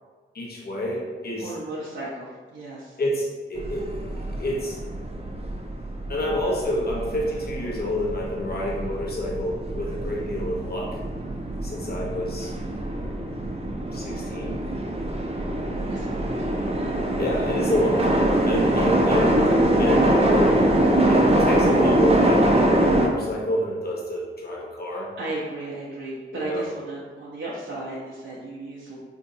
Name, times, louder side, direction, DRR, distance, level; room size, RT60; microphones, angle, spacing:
voice 1, 0.3-1.5 3.0-4.8 6.1-11.0 11.6-12.5 13.9-14.6 17.2-19.5 19.8-20.6 21.1-25.1 26.3-26.6, equal, 50° left, -3 dB, 0.9 m, -28 dB
voice 2, 1.4-3.0 15.7-16.7 24.9-29.0, right 2 dB, 70° right, -6 dB, 0.6 m, -35 dB
sound 1, 3.6-23.1, right 1 dB, 30° right, 0.5 m, -23 dB
3.7 x 2.7 x 2.6 m, 1.4 s
cardioid pair, 60°, 21 cm